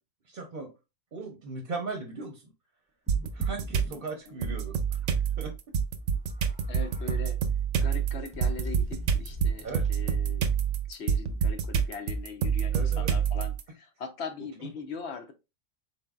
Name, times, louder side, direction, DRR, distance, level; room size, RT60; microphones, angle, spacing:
voice 1, 0.3-0.7 1.1-2.5 3.3-5.1 5.4-5.5 9.6-9.9 12.7-13.1 14.6-14.9, right 3 dB, 45° right, 0.8 m, -38 dB
sound 1, 3.1-4.1 4.4-4.5 4.8-5.0 6.2-7.2 7.7-10.0, left 1 dB, 10° right, 0.5 m, -43 dB
sound 2, 3.1-3.9 4.4-13.6, right 7 dB, 80° right, 1.0 m, -27 dB
voice 2, 6.7-7.4 7.8-10.5 10.9-15.3, left 5 dB, 65° left, 1.0 m, -40 dB
4.1 x 3.7 x 2.3 m
omnidirectional pair, 1.3 m